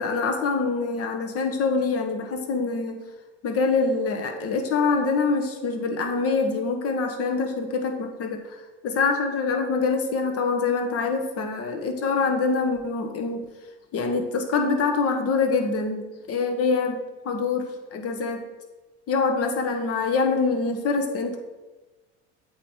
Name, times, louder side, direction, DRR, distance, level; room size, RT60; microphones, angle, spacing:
voice 1, 0.0-3.0 3.4-8.4 8.8-13.4 13.9-18.4 19.1-21.4, left 4 dB, 45° left, 4 dB, 1.3 m, -25 dB
8.1 x 3.8 x 4.4 m, 1.2 s
hypercardioid pair, 80°, 33 cm